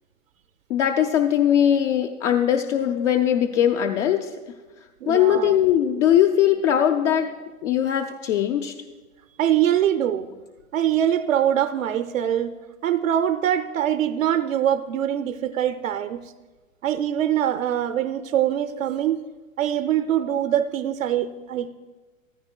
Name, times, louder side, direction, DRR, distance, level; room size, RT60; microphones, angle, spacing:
voice 1, 0.7-4.3 5.1-7.3 7.6-8.7, left 10 dB, 60° left, 4 dB, 0.7 m, -20 dB
voice 2, 5.0-5.5 9.4-10.3 10.7-12.5 12.8-16.2 16.8-19.2 19.6-21.7, right 10 dB, 75° right, 10 dB, 0.6 m, -23 dB
14.0 x 13.5 x 2.3 m, 1.3 s
hypercardioid pair, 110°, 40 cm